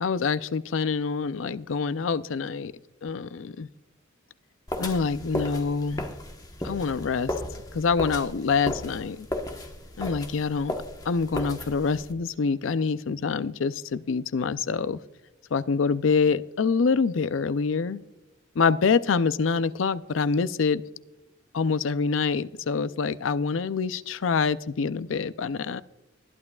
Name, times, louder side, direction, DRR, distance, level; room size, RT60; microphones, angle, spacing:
voice 1, 0.0-2.7 3.0-3.7 4.8-6.1 6.6-7.3 7.7-9.3 10.0-10.7 11.1-15.0 15.5-18.0 18.6-20.8 21.5-25.8, left 5 dB, 85° left, 15 dB, 0.5 m, -26 dB
sound 1, 4.7-12.1, left 1 dB, 20° left, 1.1 m, -35 dB
20.5 x 11.0 x 2.3 m, 1.1 s
head